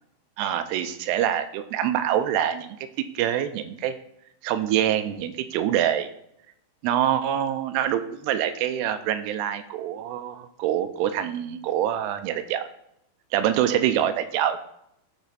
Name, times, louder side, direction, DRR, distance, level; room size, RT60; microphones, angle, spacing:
voice 1, 0.4-2.9 3.2-3.9 4.4-6.1 6.8-12.7 13.3-14.6, right 10 dB, 85° right, 9 dB, 2.4 m, -25 dB
10.5 x 5.9 x 4.2 m, 0.74 s
omnidirectional pair, 5.3 m